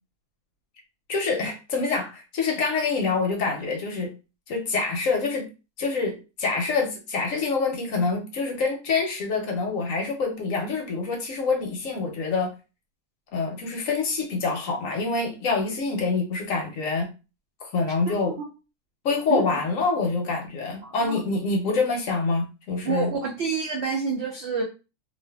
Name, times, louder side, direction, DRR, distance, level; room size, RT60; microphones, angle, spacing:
voice 1, 1.1-4.1 4.5-5.4 5.8-12.5 13.3-17.1 17.6-18.3 19.0-23.1, left 4 dB, 65° left, 1 dB, 0.9 m, -26 dB
voice 2, 18.0-18.5 19.3-19.4 20.8-21.2 22.8-24.6, right 5 dB, 75° right, 0 dB, 0.6 m, -28 dB
2.4 x 2.4 x 2.2 m, 0.30 s
omnidirectional pair, 1.7 m